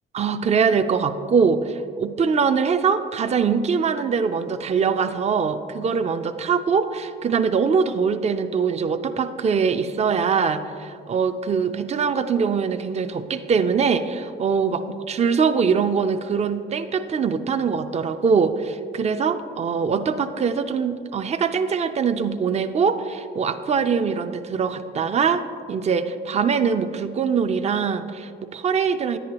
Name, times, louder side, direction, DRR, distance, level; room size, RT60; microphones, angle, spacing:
voice 1, 0.1-29.2, right 6 dB, 35° right, 9 dB, 0.5 m, -23 dB
10.0 x 9.2 x 2.9 m, 2.3 s
cardioid pair, 90°, 20 cm